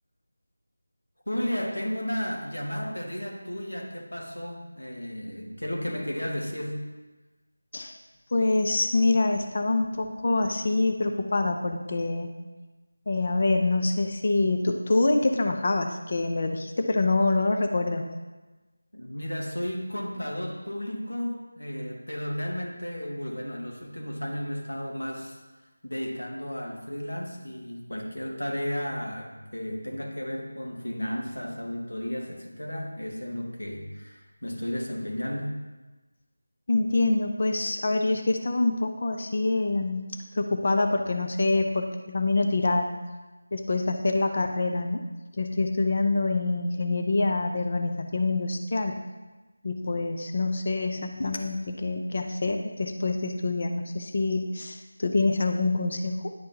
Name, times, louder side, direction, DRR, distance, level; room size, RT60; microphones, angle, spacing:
voice 1, 1.3-6.8 18.9-25.4 25.8-35.6, equal, 85° left, 1 dB, 1.4 m, -33 dB
voice 2, 8.3-12.3 13.1-18.0 36.7-42.9 43.5-45.0 45.4-49.0 49.6-56.3, left 2 dB, 45° left, 5 dB, 0.5 m, -26 dB
10.0 x 5.3 x 2.9 m, 1.2 s
figure-of-eight pair, 170°, 0 cm